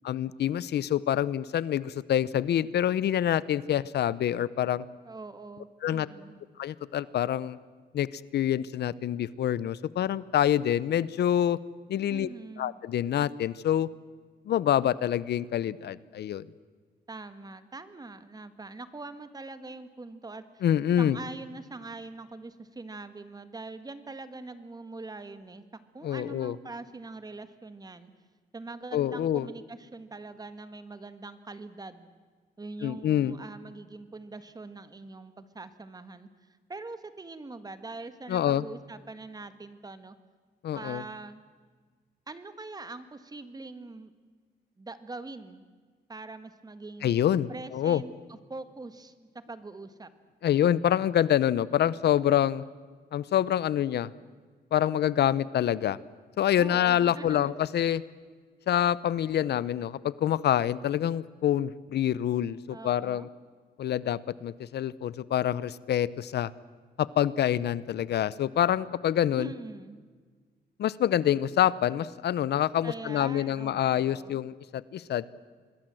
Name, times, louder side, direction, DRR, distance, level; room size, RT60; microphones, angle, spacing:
voice 1, 0.0-4.8 5.8-6.1 6.6-7.6 7.9-11.6 11.9-12.3 12.6-13.9 14.5-16.4 20.6-21.2 26.0-26.5 28.9-29.5 32.8-33.3 38.3-38.6 40.6-41.0 47.0-48.0 50.4-52.6 53.1-54.1 54.7-56.0 56.4-58.0 58.7-63.3 63.8-66.5 67.0-69.5 70.8-75.3, left 10 dB, 75° left, 19 dB, 0.7 m, -26 dB
voice 2, 5.0-6.4 12.1-12.7 17.1-20.6 21.0-25.6 25.9-28.1 28.5-32.1 32.6-40.2 40.7-41.4 42.3-44.1 44.8-45.7 46.1-47.1 47.5-49.1 49.5-50.1 56.6-57.8 62.7-63.3 69.4-70.0 72.8-74.5, right 3 dB, 20° right, 11 dB, 1.6 m, -43 dB
26.0 x 21.0 x 7.7 m, 1.5 s
cardioid pair, 120°, 17 cm